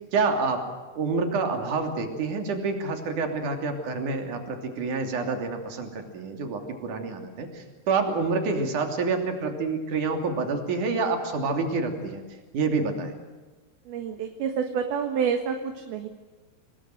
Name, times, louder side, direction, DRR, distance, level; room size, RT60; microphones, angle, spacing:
voice 1, 0.1-0.7 1.0-12.2 12.5-13.1, right 4 dB, 45° right, 5 dB, 4.0 m, -27 dB
voice 2, 13.9-16.1, right 7 dB, 65° right, 5 dB, 3.0 m, -28 dB
27.5 x 20.5 x 7.8 m, 1.3 s
omnidirectional pair, 5.6 m